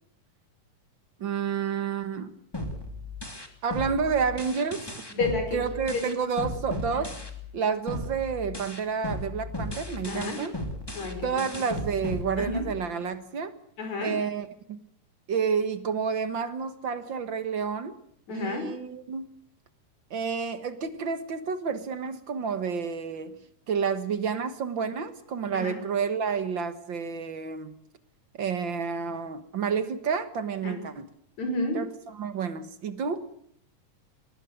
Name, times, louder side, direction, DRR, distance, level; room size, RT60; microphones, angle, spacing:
voice 1, 1.2-2.3 3.6-4.8 5.5-7.2 7.5-10.5 11.2-13.5 14.0-14.8 15.3-18.0 18.3-19.3 20.1-23.4 23.7-27.7 28.4-31.1 31.7-33.2, right 6 dB, 50° right, 11 dB, 1.6 m, -30 dB
sound 1, 2.5-7.6 7.9-12.9, left 2 dB, 10° left, 2.3 m, -36 dB
voice 2, 5.1-5.6 5.9-6.0 10.1-10.4 10.9-11.3 12.4-12.6 13.8-14.1 18.3-18.7 25.5-25.7 30.6-30.8 31.4-31.8, left 2 dB, 55° left, 5 dB, 6.3 m, -30 dB
22.0 x 20.0 x 8.0 m, 0.66 s
omnidirectional pair, 3.8 m